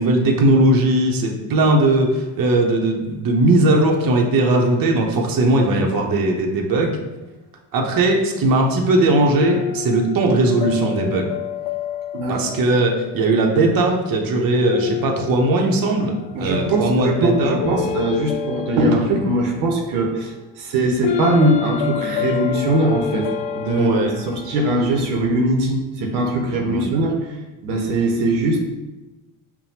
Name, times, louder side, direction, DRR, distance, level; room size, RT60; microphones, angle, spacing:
voice 1, 0.0-7.0 7.7-11.3 12.4-17.6 19.9-20.0 23.8-24.1 26.5-26.9, right 2 dB, 45° right, 1 dB, 0.8 m, -18 dB
sound 1, 9.4-12.9 14.7-16.2 16.5-19.8 21.0-24.9, left 9 dB, 65° left, 0.5 m, -28 dB
voice 2, 12.1-12.4 16.3-23.3 23.5-23.9 24.2-27.2 27.6-28.6, right 2 dB, 80° right, 0 dB, 0.8 m, -20 dB
5.5 x 2.2 x 2.7 m, 1.1 s
hypercardioid pair, 65°, 49 cm